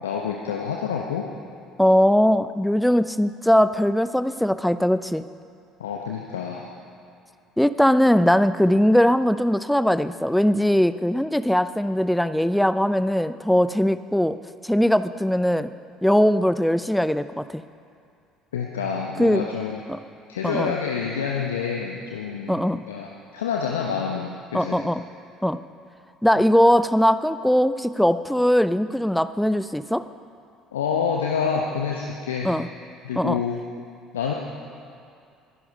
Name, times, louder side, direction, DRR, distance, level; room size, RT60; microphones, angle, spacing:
voice 1, 0.0-1.3 5.8-6.7 18.5-19.8 20.3-22.6 22.9-24.8 30.7-32.5 33.0-33.6 34.1-34.3, left 6 dB, 75° left, 0 dB, 1.0 m, -27 dB
voice 2, 1.8-5.3 7.6-14.4 14.6-15.7 16.0-17.6 19.2-19.5 19.9-20.0 20.4-20.7 22.5-22.8 24.5-25.0 25.4-25.6 26.2-30.0 32.4-32.7 33.2-33.4, equal, 5° left, 13 dB, 0.6 m, -20 dB
21.5 x 11.0 x 5.3 m, 2.5 s
figure-of-eight pair, 55°, 0 cm